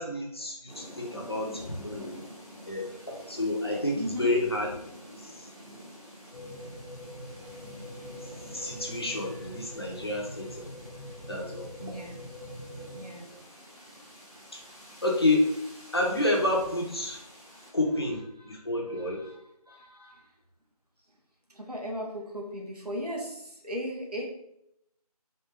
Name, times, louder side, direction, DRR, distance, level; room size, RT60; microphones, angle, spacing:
voice 1, 0.0-2.1 2.7-4.7 5.1-5.3 8.5-10.7 11.3-11.7 14.5-14.6 15.0-15.5 15.9-17.2 17.7-18.2 18.5-19.2, left 1 dB, 40° left, -1 dB, 0.7 m, -29 dB
sound 1, 0.7-17.7, equal, 5° right, 1.0 m, -48 dB
voice 2, 4.0-4.3 11.8-12.2 12.9-13.4 18.4-19.4 19.7-20.3 21.5-24.3, equal, 80° right, 0 dB, 1.1 m, -37 dB
sound 2, 6.3-13.0, equal, 70° left, 1.1 m, -44 dB
3.3 x 2.6 x 3.3 m, 0.77 s
figure-of-eight pair, 165°, 20 cm